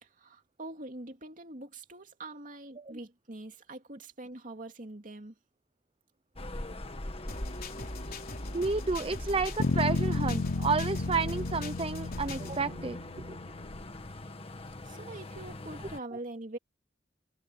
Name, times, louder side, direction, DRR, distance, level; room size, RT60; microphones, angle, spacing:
voice 1, 0.0-5.3 14.8-16.6, right 2 dB, 45° right, 2.7 m, -44 dB
sound 1, 6.3-16.0, left 1 dB, 30° left, 1.7 m, -42 dB
sound 2, 7.3-12.6, left 2 dB, 55° left, 3.8 m, -41 dB
voice 2, 8.5-13.0 13.3-13.4, right 4 dB, 30° right, 0.7 m, -31 dB
sound 3, 9.6-13.6, left 3 dB, 85° left, 0.7 m, -32 dB
head